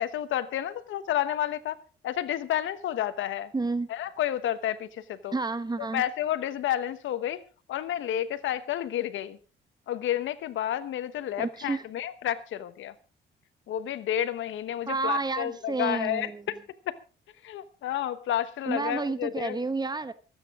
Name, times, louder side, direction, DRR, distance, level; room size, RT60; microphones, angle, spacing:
voice 1, 0.0-1.8 2.0-3.5 3.9-5.3 5.9-7.4 7.7-9.4 9.9-12.9 13.7-16.6 16.9-17.0 17.4-19.6, left 11 dB, 75° left, 1.1 m, -30 dB
voice 2, 3.5-3.9 5.3-6.0 11.4-11.8 14.9-16.4 18.7-20.1, right 3 dB, 20° right, 1.1 m, -30 dB
24.5 x 9.1 x 3.7 m
cardioid pair, 90°, 20 cm